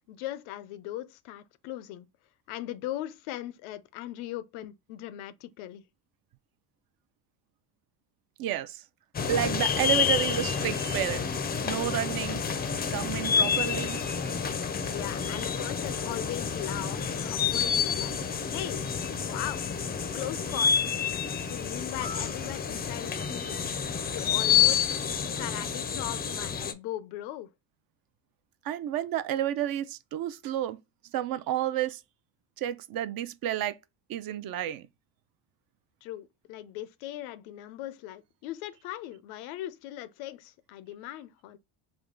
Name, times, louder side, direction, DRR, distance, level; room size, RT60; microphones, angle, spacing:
voice 1, 0.1-2.1 2.5-5.8 14.9-18.2 18.5-18.8 19.2-19.6 20.1-20.8 21.5-23.6 24.1-24.9 25.4-27.5 36.0-41.6, left 14 dB, 85° left, 0.6 m, -39 dB
voice 2, 8.4-8.8 9.3-12.4 12.9-14.6 28.6-30.8 31.1-32.0 32.6-33.8 34.1-34.9, right 11 dB, 50° right, 0.5 m, -31 dB
sound 1, 9.1-26.7, left 7 dB, 20° left, 0.4 m, -29 dB
3.5 x 2.3 x 3.7 m
supercardioid pair, 95°, 45 cm